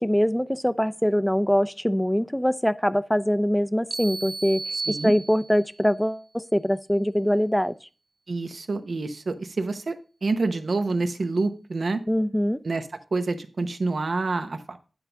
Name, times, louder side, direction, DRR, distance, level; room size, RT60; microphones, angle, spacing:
voice 1, 0.0-7.7 12.1-12.6, equal, 5° left, 0.5 m, -23 dB
sound 1, 3.9-5.8, right 3 dB, 55° right, 0.4 m, -33 dB
voice 2, 8.3-10.0 10.2-12.0 12.6-14.8, right 3 dB, 70° right, 0.9 m, -27 dB
9.7 x 4.0 x 5.8 m
cardioid pair, 55°, 0 cm